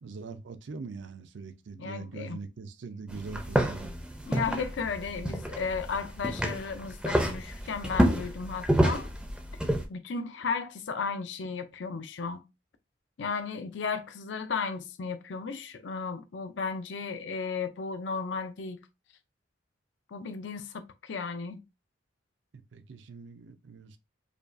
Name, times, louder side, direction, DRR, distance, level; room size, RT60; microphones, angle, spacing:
voice 1, 0.0-3.9 22.5-24.0, right 4 dB, 70° right, 0.5 m, -42 dB
voice 2, 1.8-2.4 4.2-9.1 9.9-12.4 13.2-18.8 20.1-21.6, left 5 dB, 70° left, 0.5 m, -34 dB
sound 1, 3.1-9.8, equal, 5° right, 0.5 m, -29 dB
5.0 x 2.3 x 2.5 m
head